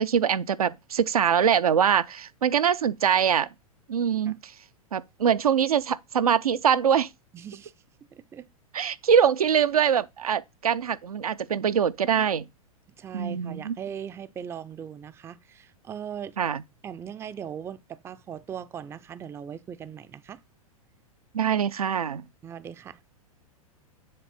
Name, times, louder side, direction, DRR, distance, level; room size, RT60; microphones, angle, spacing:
voice 1, 0.0-3.5 3.9-4.5 4.9-7.1 8.7-12.5 13.1-13.7 16.4-16.6 21.3-22.3, right 8 dB, 80° right, 0.5 m, -23 dB
voice 2, 7.3-7.7 8.1-8.5 13.0-16.4 16.8-20.4 22.4-23.0, right 8 dB, 15° right, 0.4 m, -39 dB
7.6 x 3.2 x 5.7 m
figure-of-eight pair, 100°, 19 cm